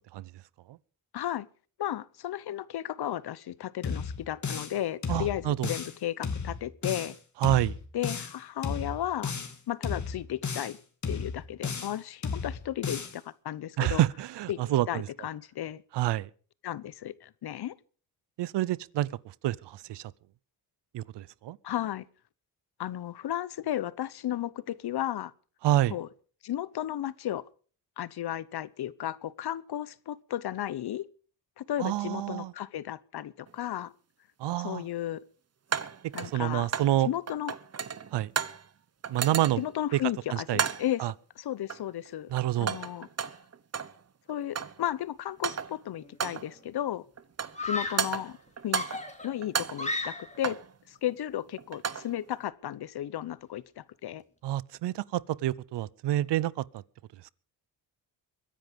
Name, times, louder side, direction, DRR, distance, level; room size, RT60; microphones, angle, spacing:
voice 1, 1.1-1.5 1.8-7.2 7.9-9.3 9.7-10.8 11.1-14.0 14.5-14.6 14.9-15.8 16.6-17.7 21.6-22.0 22.8-25.3 25.9-26.1 26.4-27.4 28.0-31.1 31.6-33.9 34.6-35.2 36.1-36.7 37.0-37.5 39.6-43.1 44.3-47.0 47.6-48.4 48.6-48.8 49.2-50.6 50.9-54.2, left 12 dB, 60° left, 0.9 m, -34 dB
sound 1, 3.8-4.8 5.0-6.0 6.2-7.2 7.4-8.4 8.6-9.6 9.8-10.8 11.0-12.0 12.2-13.2, left 5 dB, 40° left, 2.7 m, -34 dB
voice 2, 5.1-5.7 7.4-7.8 13.8-15.1 15.9-16.3 18.4-19.1 19.4-20.1 20.9-21.6 25.6-26.0 31.8-32.5 34.4-34.8 36.2-37.1 38.1-38.3 39.1-39.6 39.9-40.0 40.3-40.7 41.0-41.1 42.3-42.8 54.4-56.8, right 14 dB, 70° right, 0.7 m, -28 dB
sound 2, 33.5-33.6 35.7-37.0 37.3-38.7 39.0-39.8 40.5-41.0 41.7-42.1 42.4-44.0 44.3-44.9 45.3-45.8 46.2-46.5 47.2-47.7 48.0-49.1 49.4-50.7 51.6-52.1, right 7 dB, 35° right, 1.0 m, -33 dB
Screaming, 46.0-46.5 47.5-48.2 48.7-50.5, left 2 dB, 15° left, 3.1 m, -35 dB
22.5 x 10.5 x 5.2 m
cardioid pair, 100°, 43 cm